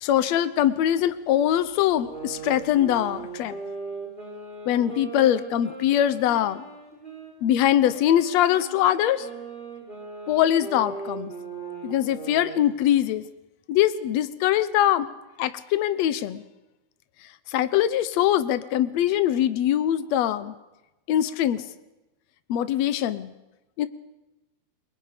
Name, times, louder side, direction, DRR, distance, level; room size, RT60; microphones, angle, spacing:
voice 1, 0.0-3.5 4.7-6.7 7.4-9.3 10.3-11.3 11.8-13.2 13.7-15.1 15.4-16.4 17.5-20.5 21.1-21.6 22.5-23.3 23.8-23.9, left 11 dB, 80° left, 13 dB, 1.5 m, -22 dB
sound 1, 1.9-7.3 7.8-12.7, right 4 dB, 10° right, 4.9 m, -39 dB
29.5 x 23.5 x 5.2 m, 1.0 s
omnidirectional pair, 4.4 m